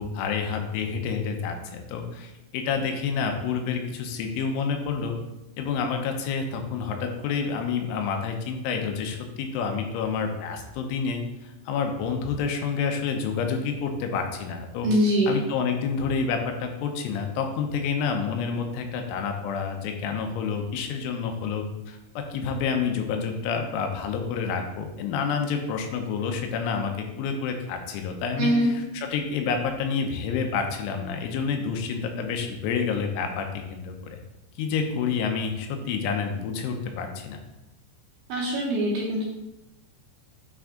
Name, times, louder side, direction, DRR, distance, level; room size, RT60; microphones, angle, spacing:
voice 1, 0.0-5.2 5.6-14.9 15.3-34.2 34.6-37.4, left 5 dB, 85° left, 4 dB, 3.2 m, -29 dB
voice 2, 14.8-15.4 28.4-28.7 38.3-39.2, equal, 75° right, -4 dB, 2.4 m, -23 dB
9.0 x 3.4 x 3.7 m, 0.94 s
omnidirectional pair, 5.5 m